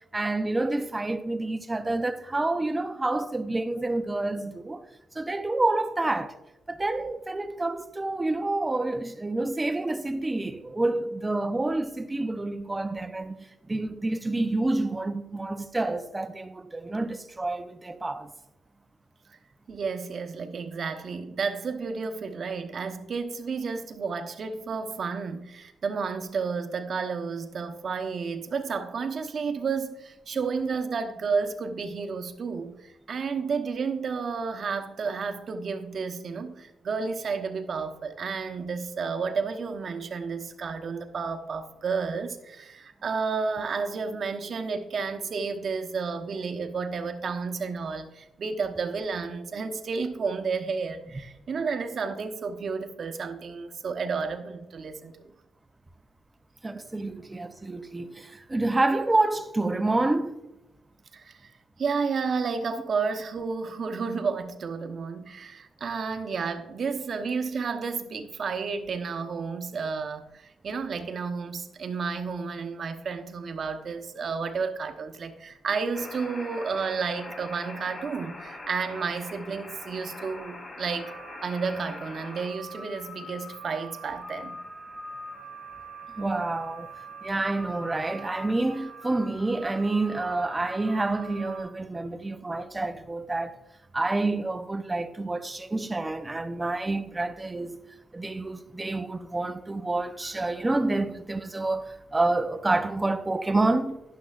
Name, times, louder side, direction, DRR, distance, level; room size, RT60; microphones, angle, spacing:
voice 1, 0.1-4.9 5.1-6.3 6.7-18.3 56.6-60.4 86.2-86.9 87.2-93.6 93.9-97.8 98.1-104.0, right 2 dB, 20° right, 0.7 m, -28 dB
voice 2, 19.7-55.3 56.6-56.8 61.1-61.5 61.8-81.1 81.4-84.6, right 5 dB, 55° right, 1.0 m, -31 dB
sound 1, 75.9-91.6, equal, 40° left, 3.4 m, -43 dB
12.0 x 10.5 x 2.5 m
cardioid pair, 90°, 0 cm